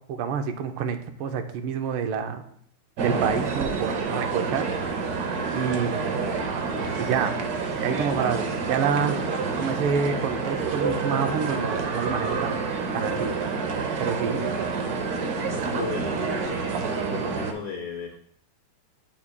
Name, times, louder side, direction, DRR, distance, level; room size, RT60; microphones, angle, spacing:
voice 1, 0.0-2.4 3.0-4.7 5.5-6.1 7.0-7.4 7.8-8.4 8.7-9.2 9.6-12.6 12.9-13.3 14.0-14.4, right 6 dB, 85° right, 7 dB, 1.5 m, -27 dB
sound 1, 3.0-17.5, right 4 dB, 60° right, 1.0 m, -28 dB
voice 2, 5.4-5.7 14.3-14.5 15.4-18.2, left 5 dB, 85° left, 4 dB, 0.8 m, -37 dB
8.1 x 6.0 x 2.2 m, 0.67 s
omnidirectional pair, 2.3 m